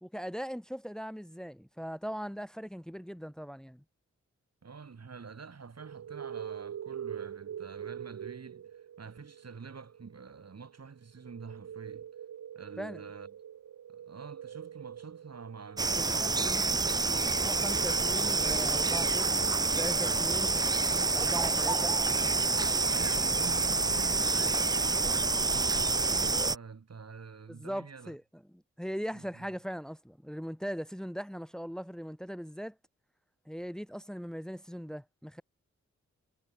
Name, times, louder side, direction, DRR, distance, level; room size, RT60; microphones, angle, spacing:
voice 1, 0.0-3.8 12.8-13.0 16.0-16.6 17.4-20.5 21.1-22.0 27.5-28.2 28.8-32.8 33.5-35.4, equal, ahead, 1.8 m, -39 dB
voice 2, 4.6-12.1 12.5-13.3 13.9-16.9 21.4-21.7 22.6-28.2 29.1-29.5, right 5 dB, 60° right, 5.0 m, -47 dB
sound 1, 5.8-20.0, right 9 dB, 75° right, 1.3 m, -45 dB
sound 2, 15.8-26.6, right 3 dB, 15° right, 0.3 m, -28 dB
supercardioid pair, 40°, 29 cm